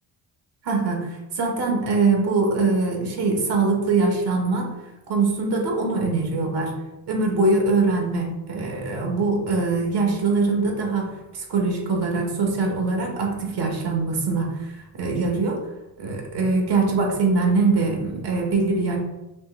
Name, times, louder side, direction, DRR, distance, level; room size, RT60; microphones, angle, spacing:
voice 1, 0.6-1.1 1.4-4.7 5.1-6.7 7.1-14.5 14.9-15.6 16.0-19.0, right 3 dB, 65° right, 1 dB, 1.3 m, -22 dB
5.3 x 2.4 x 3.9 m, 1.0 s
cardioid pair, 100°, 43 cm